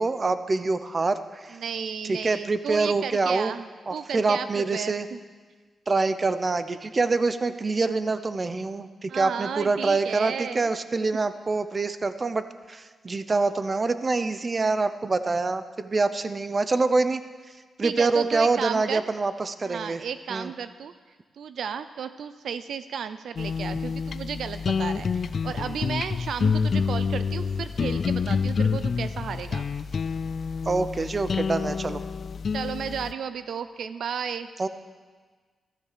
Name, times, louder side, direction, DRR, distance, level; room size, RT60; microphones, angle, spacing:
voice 1, 0.0-1.6 2.0-3.5 3.9-5.1 5.9-17.2 17.8-20.0 20.3-20.5 30.7-32.0 34.6-34.7, right 3 dB, 35° right, 12 dB, 0.8 m, -25 dB
voice 2, 1.5-3.6 3.9-5.2 9.1-10.7 17.8-19.0 19.7-20.9 21.4-29.6 32.5-34.5, right 7 dB, 75° right, 12 dB, 0.5 m, -33 dB
sound 1, 23.4-33.1, left 5 dB, 55° left, 0.4 m, -28 dB
14.0 x 13.0 x 6.8 m, 1.5 s
cardioid pair, 85°, 0 cm